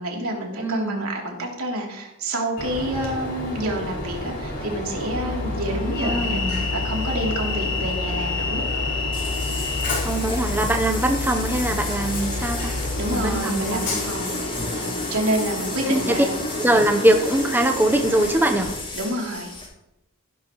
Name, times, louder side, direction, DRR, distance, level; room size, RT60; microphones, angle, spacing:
voice 1, 0.0-6.4 6.7-8.7 13.0-14.4 14.8-16.3 18.9-19.5, right 1 dB, 75° right, -1 dB, 3.1 m, -28 dB
voice 2, 0.6-1.1 6.0-6.7 10.0-12.7 13.1-13.8 15.9-16.2 16.6-18.7, right 1 dB, 10° right, 4 dB, 0.8 m, -22 dB
Train, 2.6-18.7, left 2 dB, 55° left, 4.5 m, -30 dB
sound 1, 5.1-16.5 16.7-17.0, left 3 dB, 70° left, 1.0 m, -32 dB
sound 2, 9.1-19.7, left 3 dB, 25° left, 4.8 m, -34 dB
16.0 x 11.0 x 3.1 m, 0.90 s
head